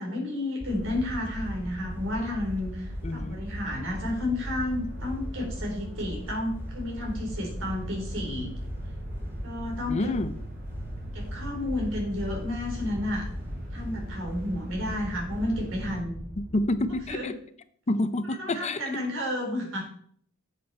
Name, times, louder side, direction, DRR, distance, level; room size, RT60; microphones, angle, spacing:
voice 1, 0.0-8.5 9.4-10.1 11.1-13.3 13.7-16.2 17.1-17.3 18.4-19.8, left 1 dB, 80° right, -1 dB, 4.1 m, -31 dB
sound 1, 0.6-17.2, equal, 10° right, 2.4 m, -37 dB
sound 2, 0.7-16.0, right 1 dB, 45° right, 4.3 m, -48 dB
voice 2, 3.0-3.4 9.9-10.4 16.4-17.3 17.9-18.8, left 1 dB, 35° left, 12 dB, 0.6 m, -28 dB
10.5 x 7.5 x 4.4 m, 0.62 s
head